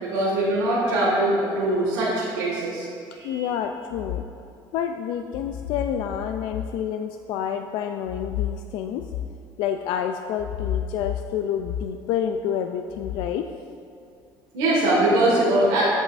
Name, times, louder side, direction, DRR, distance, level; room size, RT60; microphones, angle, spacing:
voice 1, 0.0-2.9 3.1-3.5 14.5-15.8, right 1 dB, 90° right, -7 dB, 1.9 m, -22 dB
voice 2, 3.2-4.2 4.7-9.1 9.6-13.5, left 9 dB, 75° left, 6 dB, 0.4 m, -28 dB
14.0 x 5.5 x 2.5 m, 2.5 s
cardioid pair, 115°, 8 cm